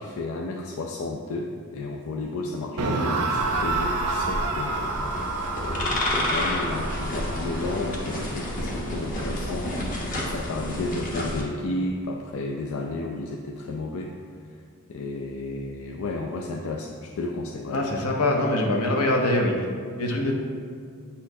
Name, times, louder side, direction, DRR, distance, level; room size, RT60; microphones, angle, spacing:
voice 1, 0.0-4.8 5.6-9.7 10.2-14.1 14.9-17.9, left 2 dB, 65° left, 1 dB, 0.4 m, -32 dB
sound 1, 2.8-9.9, right 3 dB, 90° right, 0.6 m, -30 dB
sound 2, 3.3-11.4, left 1 dB, 35° left, 0.9 m, -30 dB
voice 2, 17.7-19.5 20.0-20.3, left 1 dB, 80° left, 1 dB, 0.9 m, -23 dB
8.4 x 4.2 x 2.7 m, 2.2 s
head